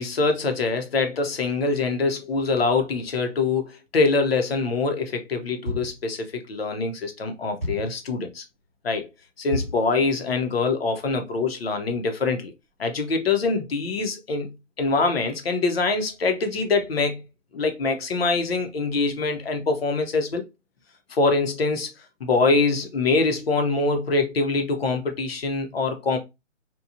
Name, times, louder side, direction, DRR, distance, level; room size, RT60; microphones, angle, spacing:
voice 1, 0.0-8.4 8.8-9.1 9.4-12.5 12.8-17.2 17.5-20.4 21.1-21.9 22.2-26.2, left 3 dB, 50° left, 0.7 m, -24 dB
sound 1, 5.7-6.1 7.6-8.0 9.5-9.9, left 1 dB, 10° left, 0.8 m, -31 dB
2.9 x 2.3 x 2.4 m
hypercardioid pair, 160°, 38 cm